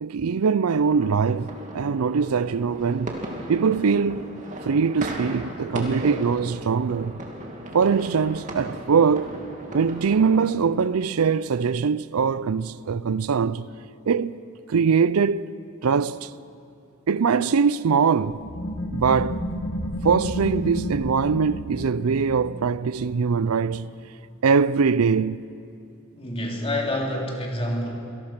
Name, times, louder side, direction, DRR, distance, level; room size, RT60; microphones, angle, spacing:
voice 1, 0.0-3.2 3.5-4.3 4.7-7.2 7.7-9.3 9.7-13.6 14.1-14.4 14.7-15.4 15.8-16.3 17.1-18.4 18.9-19.4 20.0-23.9 24.4-25.4, right 5 dB, 85° right, 0.5 m, -22 dB
sound 1, 0.8-10.5, right 1 dB, 35° right, 2.5 m, -36 dB
sound 2, 18.4-23.7, left 1 dB, 65° left, 1.9 m, -31 dB
voice 2, 26.1-27.9, left 1 dB, 25° left, 3.2 m, -27 dB
27.0 x 18.0 x 6.0 m
head